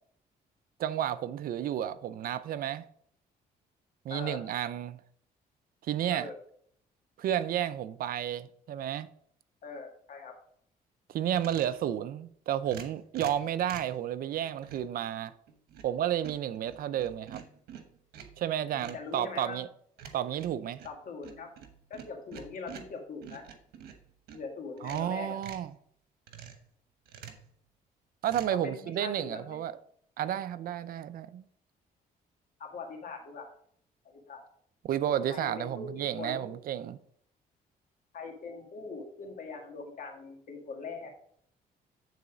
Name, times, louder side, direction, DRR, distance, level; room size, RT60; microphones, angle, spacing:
voice 1, 0.8-2.8 4.0-5.0 5.9-6.3 7.2-9.1 11.1-15.3 15.8-17.4 18.4-19.7 20.1-20.8 24.8-25.7 28.2-29.7 30.2-31.4 34.8-37.0, right 10 dB, 65° right, 0.5 m, -32 dB
voice 2, 4.1-4.4 6.1-6.4 9.6-10.3 18.7-19.6 20.8-21.5 21.9-23.4 24.3-25.4 28.5-29.6 32.6-33.5 34.0-34.4 35.3-35.9 36.2-36.6 38.1-41.1, left 4 dB, 60° left, 2.0 m, -42 dB
sound 1, 11.3-11.8 12.6-14.0 14.6-15.0 15.5-16.0 16.2-18.4 18.8-19.1 20.0-24.4 24.8-25.7 26.3-26.7 27.0-27.5 28.3-28.5, right 8 dB, 90° right, 1.2 m, -48 dB
9.4 x 4.1 x 5.0 m
cardioid pair, 105°, 16 cm